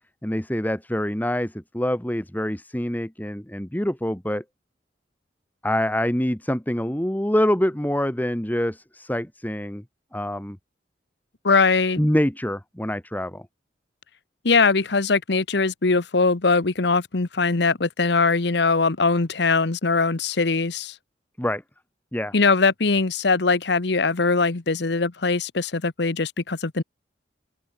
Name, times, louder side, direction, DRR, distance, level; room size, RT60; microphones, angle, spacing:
voice 1, 0.2-4.4 5.6-9.8 10.1-10.6 12.0-13.5 21.4-21.6 22.1-22.3, equal, 10° left, 1.8 m, -25 dB
voice 2, 11.4-12.0 14.4-20.9 22.3-26.8, left 4 dB, 65° left, 1.1 m, -21 dB
open air
head